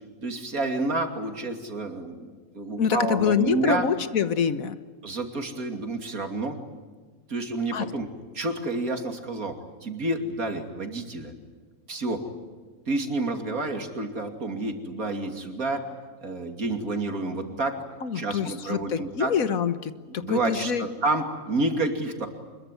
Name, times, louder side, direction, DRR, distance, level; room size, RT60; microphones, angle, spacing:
voice 1, 0.2-3.9 5.0-6.6 7.3-8.1 8.3-11.3 11.9-12.3 12.9-15.9 16.2-17.8 18.1-19.3 20.1-22.3, right 2 dB, 85° right, 5 dB, 3.2 m, -29 dB
voice 2, 2.8-4.7 7.7-7.9 18.0-20.8, left 6 dB, 75° left, 12 dB, 1.7 m, -25 dB
25.0 x 22.0 x 9.3 m, 1.5 s
omnidirectional pair, 1.5 m